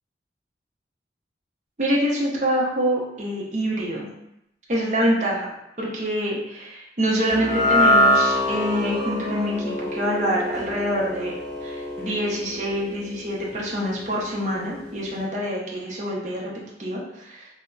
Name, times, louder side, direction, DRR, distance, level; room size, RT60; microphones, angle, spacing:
voice 1, 1.8-4.1 4.7-5.5 5.8-11.3 11.6-16.5 16.8-17.5, equal, 40° right, -4 dB, 0.5 m, -25 dB
sound 1, 7.3-13.7, left 1 dB, 5° left, 1.4 m, -24 dB
3.6 x 2.0 x 2.2 m, 0.83 s
head